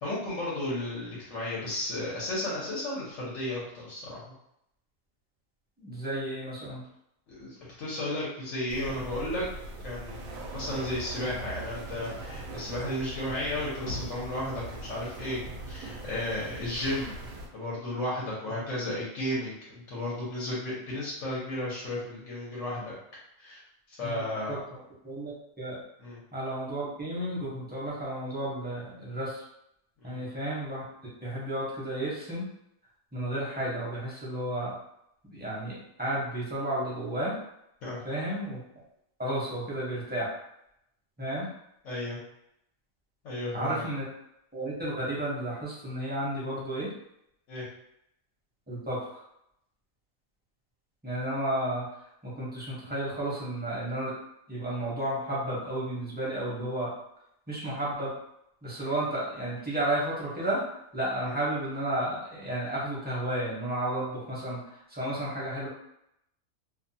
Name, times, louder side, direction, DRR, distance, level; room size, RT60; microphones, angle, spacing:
voice 1, 0.0-4.2 7.3-9.4 9.8-15.4 15.7-17.1 17.5-22.9 23.4-23.6 23.9-24.6 26.0-26.2 30.0-30.2 37.8-38.0 41.8-42.2 43.2-43.8 47.5-47.7 61.2-61.3, left 1 dB, 70° left, -6 dB, 1.1 m, -34 dB
voice 2, 5.8-6.8 18.5-18.6 24.0-25.8 26.3-29.4 30.0-30.8 31.2-32.5 33.1-34.7 35.3-37.4 38.0-38.6 39.2-40.3 41.2-41.5 43.5-44.1 44.5-46.9 48.7-49.2 51.0-51.9 52.2-54.1 54.5-56.9 57.5-58.1 58.6-60.6 60.9-65.7, right 1 dB, 10° right, -7 dB, 0.7 m, -32 dB
sound 1, 8.7-17.5, right 2 dB, 80° right, 1.0 m, -40 dB
2.7 x 2.2 x 2.7 m, 0.78 s
omnidirectional pair, 1.4 m